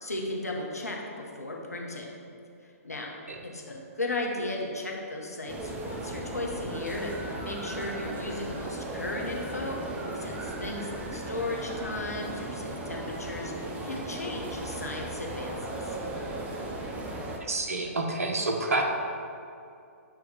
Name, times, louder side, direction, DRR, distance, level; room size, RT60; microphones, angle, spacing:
voice 1, 0.0-2.1 2.6-3.1 3.4-7.1 7.4-13.5 13.8-16.0, left 2 dB, 85° left, -1 dB, 0.9 m, -36 dB
sound 1, 5.5-17.4, right 2 dB, 15° right, 0.6 m, -36 dB
voice 2, 17.5-18.9, right 2 dB, 70° right, 2 dB, 0.9 m, -28 dB
7.7 x 3.0 x 4.9 m, 2.5 s
figure-of-eight pair, 125°, 8 cm